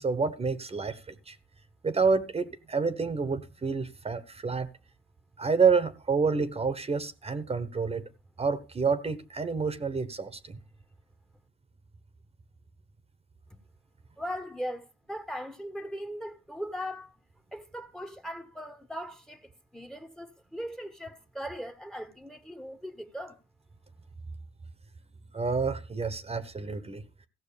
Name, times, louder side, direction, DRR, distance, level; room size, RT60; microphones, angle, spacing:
voice 1, 0.0-1.4 1.8-4.7 5.4-8.0 8.4-10.6 25.3-27.0, right 5 dB, 30° right, 1.2 m, -28 dB
voice 2, 14.2-17.1 17.5-19.4 19.7-23.4, equal, ahead, 1.3 m, -39 dB
15.0 x 6.2 x 6.9 m
cardioid pair, 90°, 20 cm